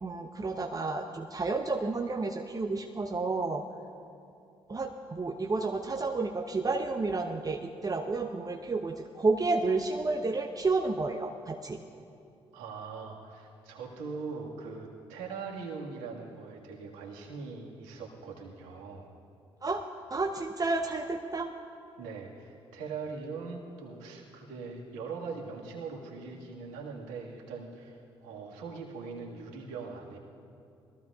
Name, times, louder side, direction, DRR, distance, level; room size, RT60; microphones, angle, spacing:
voice 1, 0.0-3.7 4.7-11.8 19.6-19.9 20.1-21.5, right 3 dB, 30° right, 4 dB, 0.8 m, -31 dB
voice 2, 12.5-19.1 22.0-30.2, right 4 dB, 80° right, -2 dB, 1.8 m, -41 dB
21.5 x 14.5 x 2.4 m, 2.7 s
hypercardioid pair, 45°, 13 cm